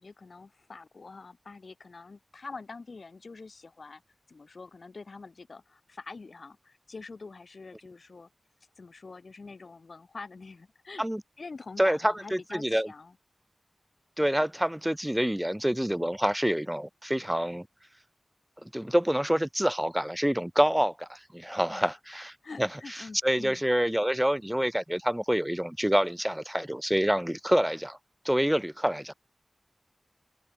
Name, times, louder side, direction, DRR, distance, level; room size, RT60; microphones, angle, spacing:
voice 1, 0.0-4.0 4.3-8.3 8.8-11.0 11.4-13.1 21.7-22.0 22.4-23.6, left 4 dB, 80° left, 1.0 m, -45 dB
voice 2, 11.8-12.9 14.2-17.7 18.6-22.3 22.6-22.7 23.2-28.0 28.2-29.1, equal, 10° right, 0.8 m, -27 dB
open air
wide cardioid pair, 55°, 0 cm